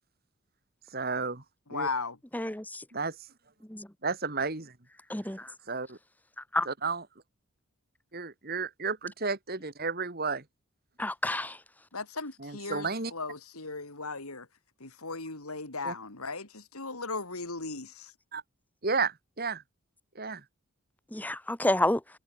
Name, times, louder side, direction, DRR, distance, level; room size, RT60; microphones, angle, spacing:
voice 1, 0.9-1.4 1.7-1.9 2.9-3.2 4.0-4.7 5.7-6.0 6.7-7.0 8.1-10.4 12.4-13.1 15.8-15.9 18.3-18.4 18.8-19.6 20.2-20.4, right 4 dB, 45° right, 2.1 m, -32 dB
voice 2, 1.7-2.2 11.9-14.5 14.8-18.1, left 3 dB, 85° left, 4.3 m, -37 dB
voice 3, 2.3-2.8 3.7-3.9 5.1-5.5 6.5-6.7 11.0-11.6 21.1-22.0, left 1 dB, 5° left, 1.1 m, -29 dB
head